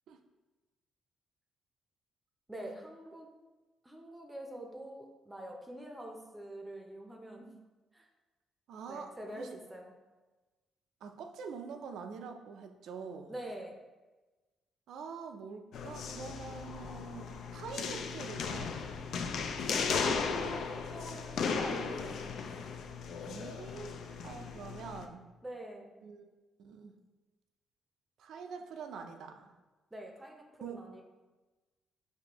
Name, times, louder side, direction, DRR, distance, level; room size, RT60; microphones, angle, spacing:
voice 1, 2.5-3.3 3.8-7.5 7.9-8.1 8.9-9.9 13.3-13.8 19.7-22.2 25.4-25.9 29.9-31.0, right 1 dB, 15° right, 1 dB, 0.6 m, -44 dB
voice 2, 8.7-9.6 11.0-13.3 14.9-18.8 23.3-25.2 26.0-26.3 26.6-27.0 28.2-29.5 30.6-30.8, right 5 dB, 75° right, 6 dB, 0.4 m, -45 dB
sound 1, 15.7-25.1, left 5 dB, 70° left, 0.3 m, -36 dB
5.2 x 2.6 x 2.9 m, 1.2 s
cardioid pair, 90°, 0 cm